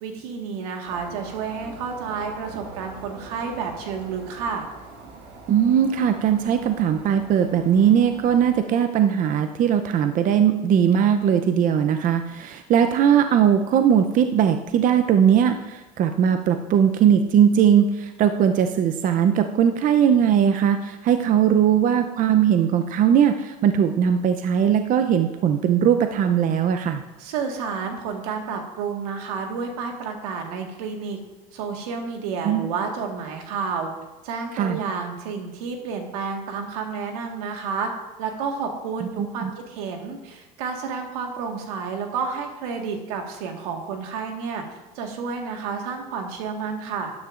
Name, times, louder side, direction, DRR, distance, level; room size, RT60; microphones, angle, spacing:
voice 1, 0.0-4.7 27.2-31.2 31.5-33.9 34.2-37.9 38.2-44.6 45.0-47.1, right 5 dB, 80° right, 3 dB, 1.7 m, -30 dB
sound 1, 0.9-8.6, right 4 dB, 60° right, 1.8 m, -43 dB
voice 2, 5.5-27.0 32.4-32.7 34.5-34.8 39.4-39.5, right 8 dB, 45° right, 8 dB, 0.6 m, -19 dB
12.0 x 9.5 x 2.5 m, 1.1 s
supercardioid pair, 95°, 19 cm